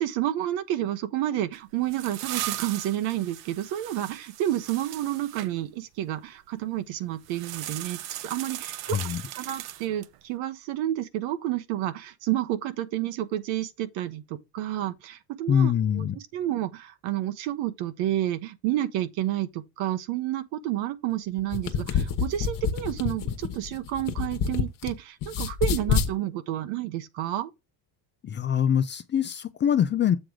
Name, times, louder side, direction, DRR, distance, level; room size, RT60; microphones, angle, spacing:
voice 1, 0.0-9.0 9.4-16.1 16.3-27.5, right 13 dB, 80° right, 1.1 m, -30 dB
sound 1, 1.5-5.5 7.2-10.2, right 13 dB, 55° right, 0.7 m, -38 dB
voice 2, 8.9-9.2 15.5-16.2 28.2-30.2, left 8 dB, 25° left, 0.4 m, -24 dB
sound 2, 21.4-24.9 25.2-26.1, left 7 dB, 45° left, 1.2 m, -27 dB
7.8 x 3.7 x 4.8 m
cardioid pair, 150°, 46 cm